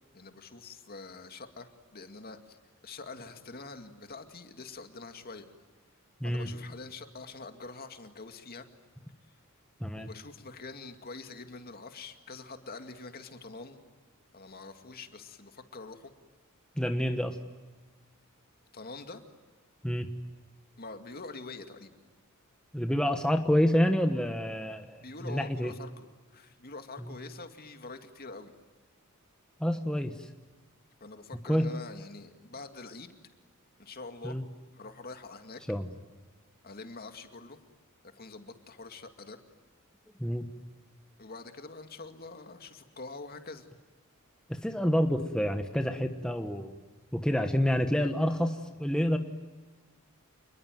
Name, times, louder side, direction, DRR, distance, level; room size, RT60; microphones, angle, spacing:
voice 1, 0.1-2.6 2.8-5.5 6.2-8.7 9.9-13.8 14.3-16.1 18.7-19.2 20.8-22.0 25.0-28.5 31.0-33.1 33.8-34.4 34.7-35.6 36.6-37.6 38.1-39.4 41.2-43.7, left 3 dB, 45° left, 7 dB, 2.2 m, -45 dB
voice 2, 16.8-17.4 19.8-20.1 22.7-25.7 29.6-30.3 31.5-31.7 34.2-34.4 35.7-35.9 40.2-40.5 44.5-46.7 47.1-49.2, equal, 5° left, 5 dB, 1.2 m, -28 dB
28.5 x 21.5 x 9.2 m, 1.3 s
head